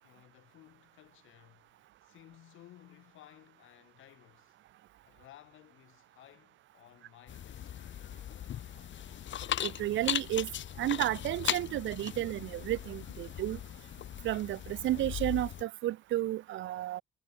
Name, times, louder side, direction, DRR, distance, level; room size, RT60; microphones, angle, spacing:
voice 1, 0.0-1.7 2.0-4.6 5.0-7.7, left 14 dB, 85° left, 7.4 m, -57 dB
sound 1, 7.3-15.6, left 11 dB, 70° left, 2.9 m, -38 dB
voice 2, 9.6-10.5 10.8-13.6 14.2-17.0, right 14 dB, 70° right, 0.6 m, -32 dB
cardioid pair, 90°, 20 cm